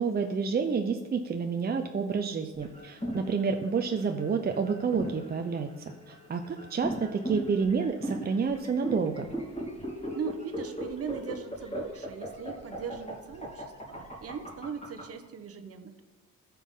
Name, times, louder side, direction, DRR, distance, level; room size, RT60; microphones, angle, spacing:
voice 1, 0.0-5.7 6.1-9.3, right 5 dB, 30° right, 6 dB, 0.6 m, -29 dB
sound 1, 2.6-15.0, equal, 20° left, 3.4 m, -37 dB
voice 2, 10.1-16.0, right 6 dB, 50° right, 8 dB, 1.0 m, -39 dB
14.0 x 5.7 x 3.7 m, 1.2 s
cardioid pair, 90°, 30 cm